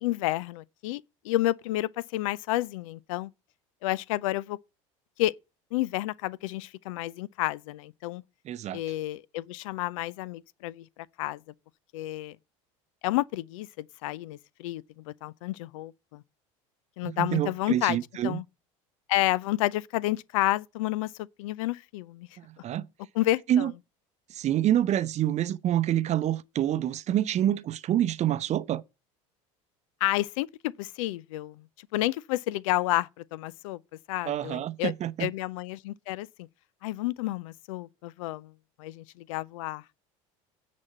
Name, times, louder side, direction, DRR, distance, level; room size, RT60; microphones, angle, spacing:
voice 1, 0.0-3.3 3.8-4.6 5.2-5.3 5.7-8.2 8.7-10.9 11.2-11.4 11.9-12.4 13.0-16.2 17.0-18.4 19.1-21.1 21.4-22.3 23.2-23.7 30.0-31.6 31.9-33.8 34.1-34.9 35.2-36.5 36.8-38.5 38.8-39.8, left 16 dB, 75° left, 0.5 m, -30 dB
voice 2, 8.4-8.8 17.0-18.4 22.4-22.9 23.5-23.7 24.3-28.8 34.2-35.3, right 11 dB, 45° right, 0.7 m, -27 dB
9.7 x 4.2 x 7.3 m
hypercardioid pair, 80°, 17 cm